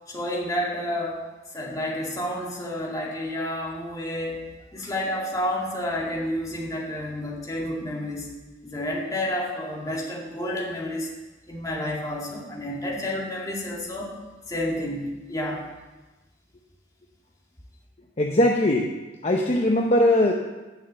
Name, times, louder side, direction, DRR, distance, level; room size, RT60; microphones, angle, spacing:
voice 1, 0.1-1.2 1.5-4.4 4.7-8.3 8.6-11.1 11.5-14.1 14.5-15.6, left 1 dB, 20° left, -3 dB, 2.1 m, -30 dB
voice 2, 18.2-18.9 19.2-20.3, left 1 dB, 35° left, 2 dB, 0.7 m, -20 dB
9.6 x 6.5 x 7.7 m, 1.2 s
head